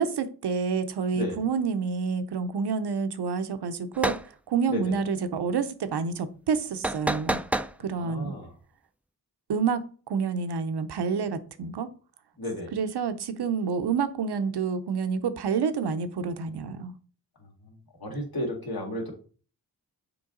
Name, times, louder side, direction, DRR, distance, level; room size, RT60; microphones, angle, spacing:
voice 1, 0.0-4.2 4.5-7.4 7.8-8.3 9.5-11.9 12.7-16.9, right 5 dB, 85° right, 10 dB, 0.8 m, -28 dB
sound 1, 3.9-4.3 6.8-7.7, right 1 dB, 5° right, 0.3 m, -28 dB
voice 2, 7.9-8.5 12.4-12.7 18.0-19.1, left 1 dB, 65° left, 0 dB, 2.3 m, -33 dB
6.9 x 4.5 x 3.8 m, 0.40 s
cardioid pair, 65°, 39 cm